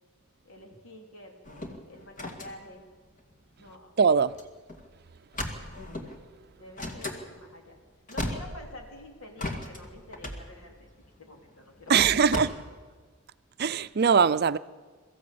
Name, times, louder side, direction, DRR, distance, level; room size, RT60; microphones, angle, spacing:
voice 1, 0.5-1.4 1.9-2.8 3.6-3.9 6.6-7.8 8.1-10.9 11.2-12.3 12.7-12.8, left 1 dB, 80° left, 3.7 m, -48 dB
sound 1, 1.4-3.9 4.3-4.4 4.7-4.9 5.3-6.2 6.8-7.2 7.8-7.9 8.0-9.0 9.4-12.4, left 1 dB, 40° left, 2.2 m, -36 dB
voice 2, 4.0-4.4 11.9-12.5 13.6-14.6, right 6 dB, 50° right, 0.5 m, -21 dB
22.5 x 14.5 x 8.6 m
head